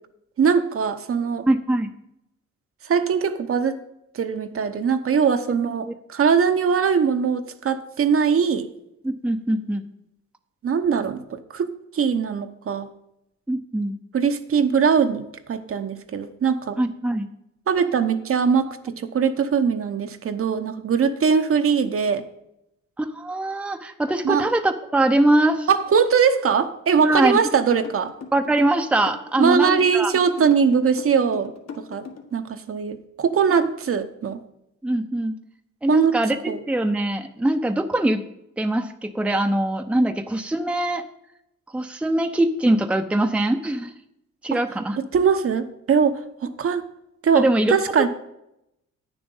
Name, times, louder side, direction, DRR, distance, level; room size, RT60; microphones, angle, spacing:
voice 1, 0.4-1.5 2.8-3.8 4.1-8.7 10.6-12.9 14.1-16.8 17.7-22.2 24.2-24.4 25.7-28.1 29.4-34.4 35.9-36.2 36.5-36.6 44.5-44.6 45.0-46.8 47.2-48.1, right 6 dB, 45° right, 8 dB, 0.9 m, -21 dB
voice 2, 1.5-1.9 5.9-6.0 9.0-9.9 13.5-14.0 16.8-17.3 23.0-25.7 27.0-27.4 28.3-30.1 33.5-33.7 34.8-35.3 35.8-36.4 36.7-38.2 38.6-41.0 41.7-43.9 44.4-45.0 47.3-47.7, right 1 dB, 5° right, 6 dB, 0.7 m, -22 dB
sound 1, 27.1-32.4, left 5 dB, 60° left, 1.8 m, -37 dB
9.3 x 7.1 x 5.5 m, 0.82 s
cardioid pair, 90°, 30 cm